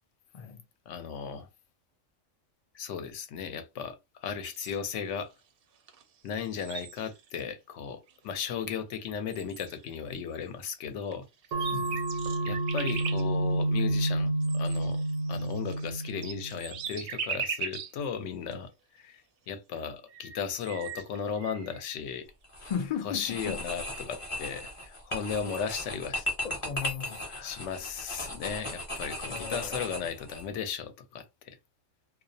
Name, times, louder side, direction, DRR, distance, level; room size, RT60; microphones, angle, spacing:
voice 1, 0.9-1.5 2.7-5.3 6.2-11.3 12.4-15.0 15.3-19.2 19.5-22.3 23.0-26.3 27.4-31.6, left 7 dB, 70° left, 0.9 m, -36 dB
sound 1, 4.4-5.0 5.9-6.0 6.3-7.4 8.1-8.2 9.0-9.1 9.3-10.0 11.1-11.2 11.4-13.2 14.4-18.0 18.5-18.6 19.8-19.9 20.1-21.8, right 6 dB, 65° right, 0.6 m, -39 dB
sound 2, 11.5-16.6, right 2 dB, 90° right, 1.0 m, -29 dB
voice 2, 11.7-12.0 22.6-23.6 26.4-27.7 29.2-29.9, left 7 dB, 90° left, 0.3 m, -37 dB
sound 3, 22.4-22.8 23.2-30.4, left 1 dB, 30° left, 0.7 m, -37 dB
2.3 x 2.0 x 2.6 m
omnidirectional pair, 1.4 m